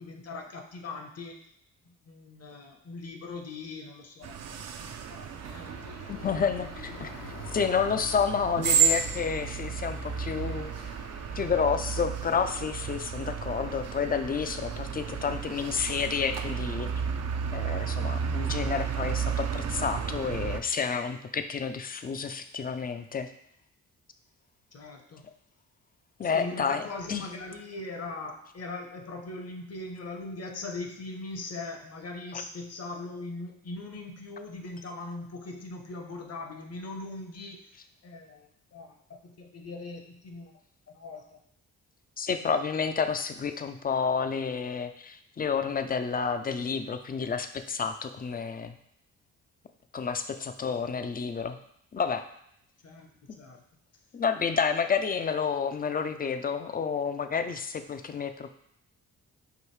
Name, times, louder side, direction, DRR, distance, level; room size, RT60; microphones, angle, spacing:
voice 1, 0.0-1.4 1.8-5.6 6.2-6.5 6.9-7.0 24.7-25.2 26.2-37.6 38.0-40.5 40.9-41.4 52.8-53.1 53.4-53.6, left 3 dB, 45° left, 3 dB, 0.9 m, -40 dB
sound 1, 4.2-20.6, right 7 dB, 50° right, 0.5 m, -32 dB
sound 2, 5.4-14.8, left 6 dB, 75° left, 0.9 m, -48 dB
voice 2, 6.1-7.1 7.5-10.7 11.3-16.9 17.5-23.3 26.2-26.8 27.1-27.2 32.3-32.4 42.2-48.7 49.9-51.6 51.9-52.2 53.3-53.4 54.1-58.5, left 6 dB, 25° left, 9 dB, 0.4 m, -30 dB
4.9 x 2.6 x 3.1 m, 0.72 s
supercardioid pair, 50°, 34 cm